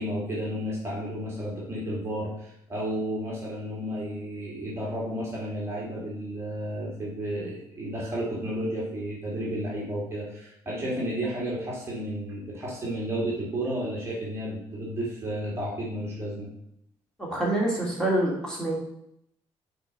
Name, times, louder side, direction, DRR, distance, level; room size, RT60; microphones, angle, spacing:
voice 1, 0.0-16.5, right 1 dB, 25° right, -4 dB, 2.1 m, -32 dB
voice 2, 17.2-18.7, right 1 dB, 5° left, -4 dB, 2.6 m, -26 dB
6.4 x 4.7 x 5.4 m, 0.75 s
cardioid pair, 130°, 10 cm